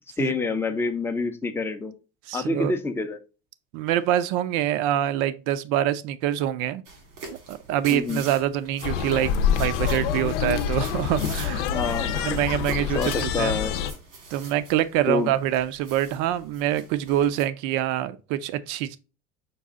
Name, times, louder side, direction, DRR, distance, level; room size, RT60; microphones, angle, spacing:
voice 1, 0.2-1.9 2.3-3.2 7.9-8.2 11.7-12.4 12.9-13.7 15.1-15.3, left 3 dB, 5° left, 0.5 m, -27 dB
voice 2, 2.3-2.7 3.7-6.8 7.5-11.7 12.2-13.6 14.3-19.0, right 12 dB, 60° right, 0.6 m, -25 dB
sound 1, 6.9-17.5, right 3 dB, 85° right, 1.9 m, -45 dB
sound 2, 8.8-13.9, left 8 dB, 85° left, 0.7 m, -26 dB
5.4 x 2.3 x 3.5 m
supercardioid pair, 110°, 35 cm